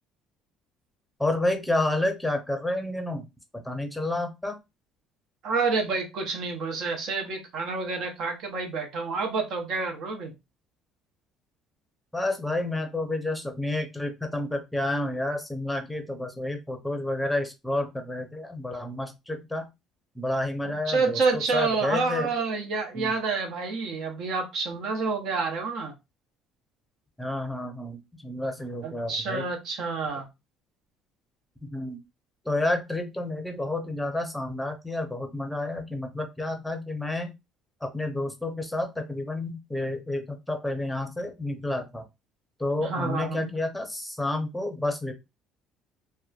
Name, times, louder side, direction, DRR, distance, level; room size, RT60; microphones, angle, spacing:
voice 1, 1.2-3.2 3.5-4.6 12.1-19.7 20.1-22.3 22.9-23.1 27.2-29.5 31.6-32.0 32.4-37.3 37.8-42.0 42.6-45.1, left 2 dB, 5° left, 5 dB, 0.7 m, -30 dB
voice 2, 5.4-10.3 20.6-25.9 28.8-30.3 42.8-43.5, right 4 dB, 65° right, 3 dB, 0.8 m, -28 dB
2.9 x 2.2 x 2.4 m, 0.24 s
cardioid pair, 100°, 0 cm